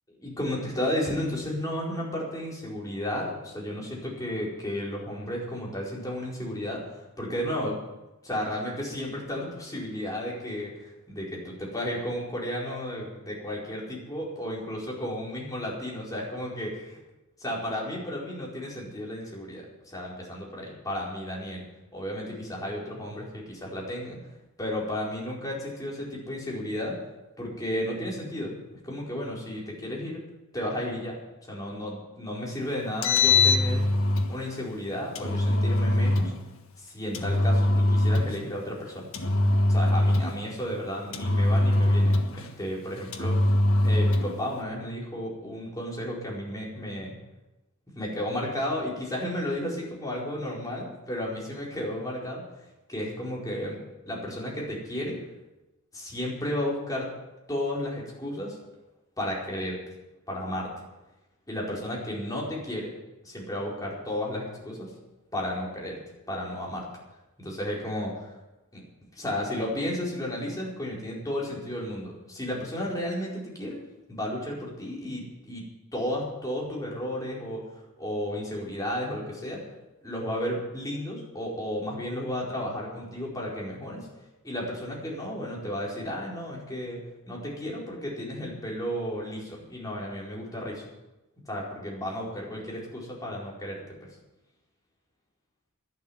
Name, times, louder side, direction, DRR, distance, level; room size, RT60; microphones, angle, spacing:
voice 1, 0.2-7.8 8.2-17.0 17.4-21.6 21.9-24.2 24.6-27.0 27.4-28.5 28.8-30.2 30.5-31.2 31.5-33.8 34.3-36.3 36.8-39.1 39.7-43.3 43.8-47.2 48.0-52.4 52.9-53.8 54.0-55.2 55.9-57.1 57.5-58.6 59.2-59.8 60.3-60.7 61.5-62.9 63.2-64.9 65.3-66.0 66.3-66.9 67.4-68.3 68.7-68.8 69.1-73.8 74.1-75.6 75.9-79.6 80.0-84.1 84.4-87.0 87.3-90.9 91.4-93.8, left 1 dB, 15° left, -4 dB, 4.6 m, -33 dB
Engine, 32.9-34.3 35.2-36.3 37.1-38.4 39.1-40.4 41.1-42.5 43.1-44.4, left 2 dB, 65° left, 1.5 m, -22 dB
12.0 x 11.5 x 8.0 m, 0.99 s
head